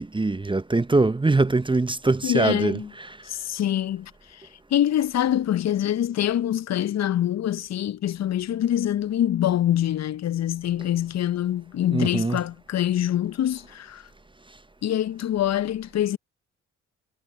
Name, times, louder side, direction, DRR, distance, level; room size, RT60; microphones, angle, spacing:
voice 1, 0.0-3.2 11.9-12.4, right 3 dB, 15° right, 0.9 m, -23 dB
voice 2, 2.2-2.9 3.3-4.4 4.7-14.0 14.8-16.2, left 11 dB, 50° left, 0.9 m, -25 dB
hypercardioid pair, 40°, 36 cm